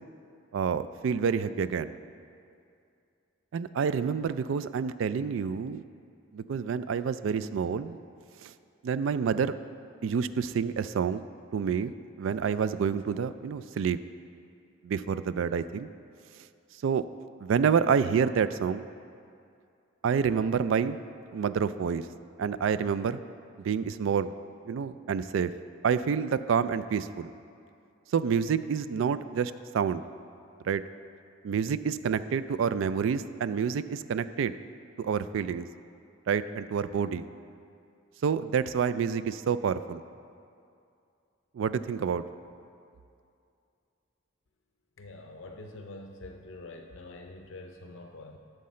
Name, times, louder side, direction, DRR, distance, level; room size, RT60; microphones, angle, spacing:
voice 1, 0.5-1.9 3.5-5.8 6.3-8.0 8.4-8.5 8.8-9.6 10.0-11.3 11.5-14.0 14.8-15.9 16.8-17.1 17.4-18.8 20.0-21.0 21.3-22.1 22.4-23.2 23.6-24.3 24.7-25.5 25.8-27.3 28.1-30.0 30.6-30.8 31.4-34.5 35.0-35.7 36.3-37.3 38.2-40.0 41.5-42.2, right 6 dB, 75° right, 14 dB, 0.3 m, -28 dB
voice 2, 45.0-48.4, left 2 dB, 75° left, 4 dB, 0.6 m, -45 dB
11.5 x 6.6 x 4.3 m, 2.5 s
head